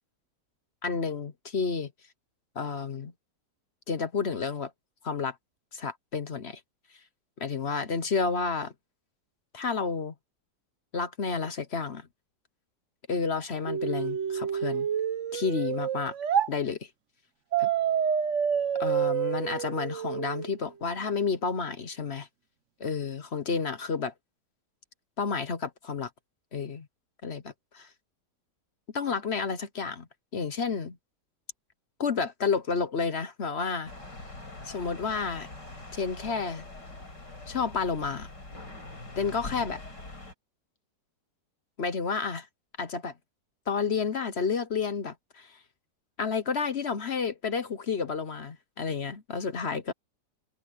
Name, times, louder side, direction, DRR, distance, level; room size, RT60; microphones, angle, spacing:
voice 1, 0.8-1.9 2.5-3.1 3.9-4.7 5.0-5.3 5.7-6.6 7.4-8.7 9.5-10.1 10.9-12.1 13.1-14.9 15.3-16.1 16.5-16.9 17.6-17.7 18.8-22.3 22.8-24.1 25.2-26.1 26.5-26.9 27.2-27.9 28.9-30.1 30.3-31.0 32.0-33.9 34.6-35.5 35.9-36.7 37.5-38.3 39.2-39.8 41.8-42.5 42.8-43.1 43.7-45.6 46.2-49.9, left 5 dB, 45° left, 1.0 m, -30 dB
sound 1, 13.7-16.5 17.5-20.5, right 8 dB, 55° right, 1.0 m, -28 dB
sound 2, 33.8-40.3, left 2 dB, 70° left, 6.5 m, -43 dB
omnidirectional pair, 1.9 m